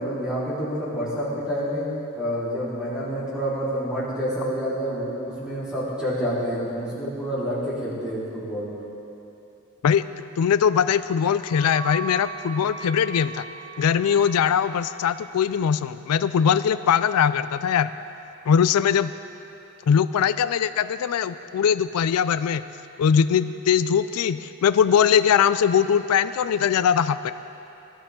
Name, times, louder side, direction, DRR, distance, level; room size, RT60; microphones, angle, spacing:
voice 1, 0.0-1.9 2.1-8.7, equal, 5° right, -10 dB, 4.1 m, -28 dB
voice 2, 10.4-13.4 13.8-17.9 18.5-19.1 19.9-22.6 23.0-27.3, left 7 dB, 85° left, 13 dB, 0.4 m, -21 dB
Wind instrument woodwind instrument, 10.8-15.5, right 4 dB, 35° left, 2.2 m, -39 dB
20.0 x 12.5 x 3.8 m, 2.9 s
head